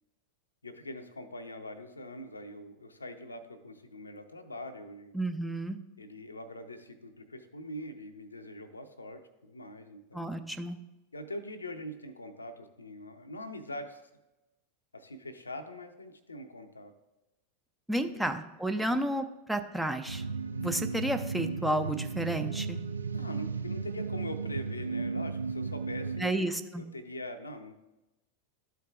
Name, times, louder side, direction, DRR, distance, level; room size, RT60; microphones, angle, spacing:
voice 1, 0.6-5.2 6.0-10.5 11.1-14.0 14.9-16.9 17.9-18.3 18.8-19.0 23.1-26.5 26.8-27.7, left 1 dB, 80° left, 8 dB, 0.6 m, -43 dB
voice 2, 5.1-5.8 10.1-10.8 17.9-20.2 20.6-22.8 26.2-26.8, right 1 dB, 5° right, 6 dB, 0.4 m, -31 dB
sound 1, 20.1-26.3, right 4 dB, 75° right, 0.3 m, -35 dB
12.0 x 4.6 x 2.4 m, 1.0 s
figure-of-eight pair, 90°, 0 cm